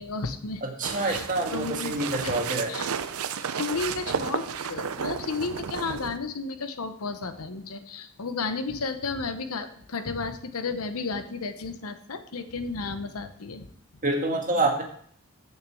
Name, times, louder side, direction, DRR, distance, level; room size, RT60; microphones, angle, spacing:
voice 1, 0.0-0.6 1.0-1.3 1.5-1.9 2.2-2.3 2.7-2.9 3.6-13.7, left 4 dB, 85° left, 10 dB, 0.9 m, -33 dB
voice 2, 0.6-2.7 14.0-14.8, right 2 dB, 35° right, 1 dB, 1.7 m, -27 dB
footsteps boots packed snow approach and walk past, 0.8-6.2, right 6 dB, 85° right, 0.6 m, -32 dB
6.7 x 6.6 x 7.6 m, 0.62 s
head